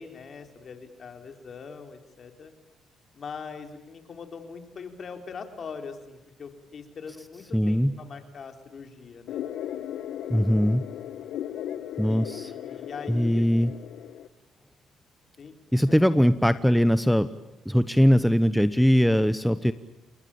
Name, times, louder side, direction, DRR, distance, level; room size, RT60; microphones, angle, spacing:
voice 1, 0.0-2.5 3.1-9.4 12.0-13.5 15.4-16.0, left 5 dB, 50° left, 6 dB, 4.0 m, -42 dB
voice 2, 7.5-8.0 10.3-10.8 12.0-12.5 13.1-13.7 15.7-17.3 17.6-19.7, equal, ahead, 12 dB, 1.0 m, -21 dB
sound 1, 9.3-14.3, left 10 dB, 80° left, 1.3 m, -36 dB
30.0 x 21.0 x 8.7 m, 0.91 s
cardioid pair, 90°, 0 cm